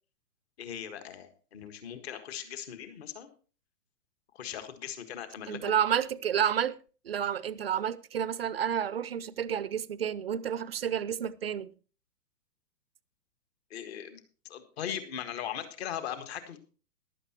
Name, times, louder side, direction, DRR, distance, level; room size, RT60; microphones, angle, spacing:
voice 1, 0.6-3.3 4.3-5.7 13.7-14.2 14.5-16.6, left 9 dB, 40° left, 1.7 m, -39 dB
voice 2, 5.5-6.8 7.0-11.7, right 9 dB, 40° right, 0.5 m, -30 dB
15.0 x 11.5 x 2.9 m
figure-of-eight pair, 120°, 49 cm